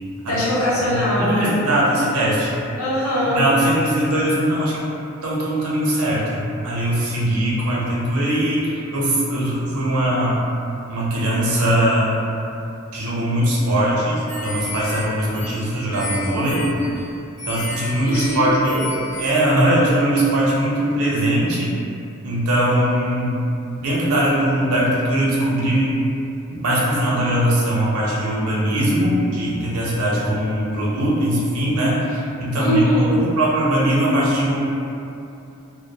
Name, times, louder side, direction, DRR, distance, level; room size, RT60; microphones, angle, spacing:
voice 1, 0.3-1.6 2.8-3.5 18.0-18.8 32.5-33.3, equal, 75° left, -7 dB, 0.7 m, -21 dB
voice 2, 0.8-2.5 3.3-4.9 5.2-10.4 10.9-12.1 12.9-16.6 17.5-18.8 19.2-21.7 22.2-23.4 23.8-26.0 26.5-32.8 33.1-34.6, right 1 dB, 85° right, -6 dB, 0.6 m, -20 dB
sound 1, 14.3-19.3, left 1 dB, 5° left, 0.5 m, -33 dB
2.2 x 2.1 x 2.7 m, 2.7 s
head